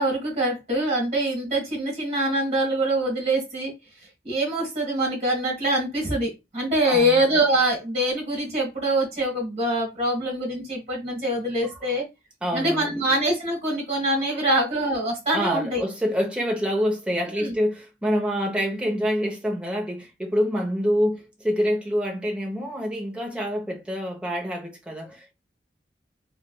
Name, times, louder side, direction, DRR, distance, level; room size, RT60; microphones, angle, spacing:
voice 1, 0.0-3.7 4.2-12.0 12.5-15.8 17.3-17.5, right 1 dB, 35° right, 1.6 m, -24 dB
voice 2, 6.8-7.2 11.8-11.9 12.4-13.0 14.2-14.4 15.3-25.3, equal, 5° right, 0.8 m, -26 dB
3.2 x 3.2 x 2.2 m
head